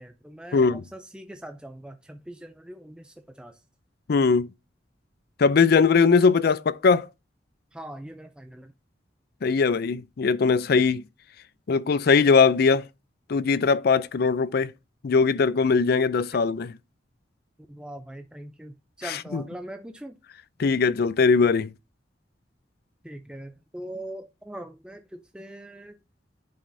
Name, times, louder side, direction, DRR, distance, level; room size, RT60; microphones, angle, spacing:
voice 1, 0.0-3.6 7.7-8.7 16.3-16.4 17.7-20.2 23.0-26.0, right 1 dB, 5° right, 0.5 m, -41 dB
voice 2, 0.5-0.8 4.1-4.5 5.4-7.1 9.4-11.0 11.7-12.8 13.3-14.7 15.0-16.7 19.1-19.4 20.6-21.7, left 5 dB, 60° left, 0.4 m, -20 dB
10.5 x 5.2 x 2.7 m
head